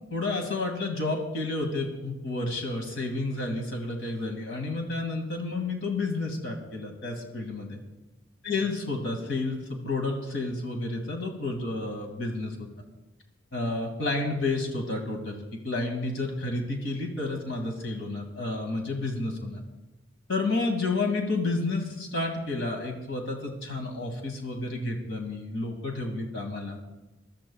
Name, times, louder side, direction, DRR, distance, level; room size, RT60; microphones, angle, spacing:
voice 1, 0.1-7.8 8.4-12.7 13.5-19.6 20.3-26.8, left 2 dB, 70° left, 3 dB, 2.1 m, -30 dB
21.5 x 13.0 x 2.3 m, 1.0 s
head